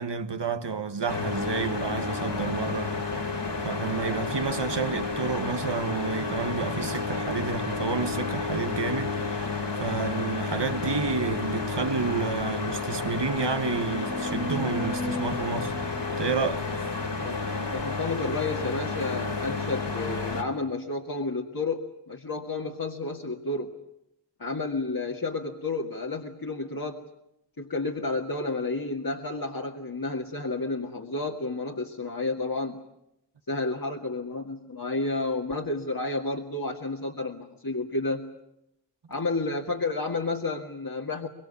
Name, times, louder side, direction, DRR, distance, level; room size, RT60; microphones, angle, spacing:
voice 1, 0.0-3.0 3.6-9.5 9.8-15.8 16.2-16.7, right 5 dB, 75° right, 1.4 m, -30 dB
sound 1, 1.1-20.4, left 3 dB, 75° left, 3.8 m, -31 dB
sound 2, 11.8-11.9 12.2-12.3 12.9-17.1 17.8-17.9, left 2 dB, ahead, 1.7 m, -38 dB
voice 2, 17.2-23.7 24.4-27.0 27.6-32.8 33.5-38.2 39.1-41.3, left 3 dB, 55° left, 2.2 m, -31 dB
24.0 x 23.0 x 8.5 m
wide cardioid pair, 45°, 42 cm